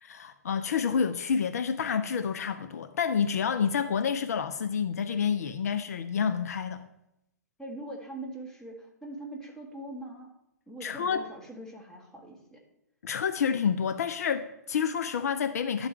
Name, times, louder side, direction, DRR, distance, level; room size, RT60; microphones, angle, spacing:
voice 1, 0.0-6.9 10.8-11.3 13.0-15.9, left 7 dB, 60° left, 10 dB, 0.4 m, -29 dB
voice 2, 7.6-10.3 10.7-12.6, right 1 dB, 5° left, -1 dB, 1.5 m, -42 dB
11.0 x 4.0 x 4.5 m, 0.87 s
figure-of-eight pair, 115°, 10 cm